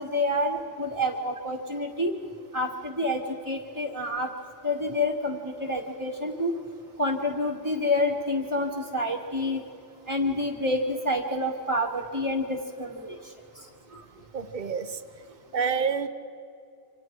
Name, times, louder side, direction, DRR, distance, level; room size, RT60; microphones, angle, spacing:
voice 1, 0.0-2.1 2.5-4.3 4.6-6.5 7.0-9.6 10.1-13.2, left 1 dB, 15° right, 0 dB, 1.5 m, -28 dB
voice 2, 14.3-15.0 15.5-16.1, right 6 dB, 40° right, 9 dB, 1.1 m, -28 dB
27.5 x 25.5 x 4.6 m, 2.6 s
omnidirectional pair, 1.3 m